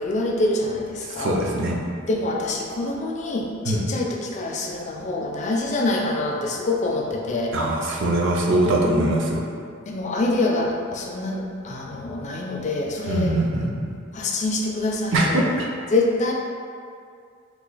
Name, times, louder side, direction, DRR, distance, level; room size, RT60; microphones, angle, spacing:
voice 1, 0.0-1.4 2.1-7.6 9.9-13.3 14.1-15.5 15.9-16.3, left 2 dB, 35° left, 0 dB, 0.3 m, -25 dB
voice 2, 1.2-1.8 3.7-3.8 7.5-9.4 13.1-13.7 15.1-15.7, right 1 dB, 65° right, -2 dB, 0.5 m, -22 dB
3.0 x 2.4 x 3.9 m, 2.2 s
head